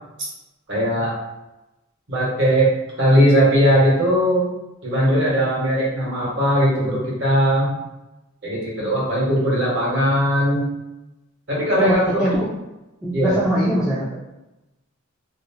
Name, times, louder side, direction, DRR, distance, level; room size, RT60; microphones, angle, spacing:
voice 1, 0.7-1.1 2.1-2.7 3.0-4.4 4.8-7.7 8.4-10.7 11.5-12.2 13.1-13.4, equal, 60° right, -5 dB, 1.1 m, -19 dB
voice 2, 11.8-12.5 13.0-14.2, right 1 dB, 5° right, -9 dB, 0.3 m, -21 dB
2.7 x 2.0 x 2.7 m, 0.98 s
head